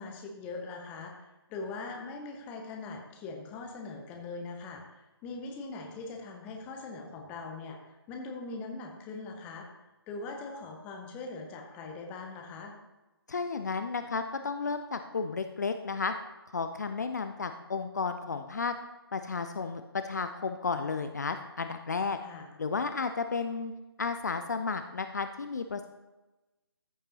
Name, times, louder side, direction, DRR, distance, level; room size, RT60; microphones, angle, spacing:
voice 1, 0.0-7.8 8.1-9.7 10.1-12.7 22.2-22.5, left 3 dB, 10° left, 2 dB, 0.7 m, -41 dB
voice 2, 13.3-16.1 16.5-18.8 19.1-22.2 22.6-23.7 24.0-25.9, left 4 dB, 45° left, 8 dB, 0.5 m, -33 dB
14.0 x 6.5 x 2.9 m, 1.1 s
figure-of-eight pair, 150°, 13 cm